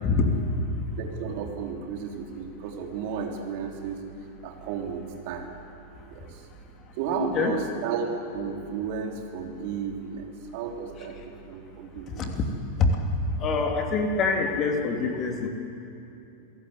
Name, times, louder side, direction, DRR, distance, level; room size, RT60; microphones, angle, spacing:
voice 1, 0.0-0.5 7.2-7.5 12.2-12.3 12.8-12.9 13.4-15.5, left 4 dB, 30° left, 3 dB, 3.0 m, -25 dB
voice 2, 1.0-4.0 4.4-5.5 6.0-6.4 7.0-12.3, right 6 dB, 50° right, 2 dB, 3.3 m, -33 dB
27.0 x 18.0 x 8.2 m, 2.8 s
figure-of-eight pair, 90°, 0 cm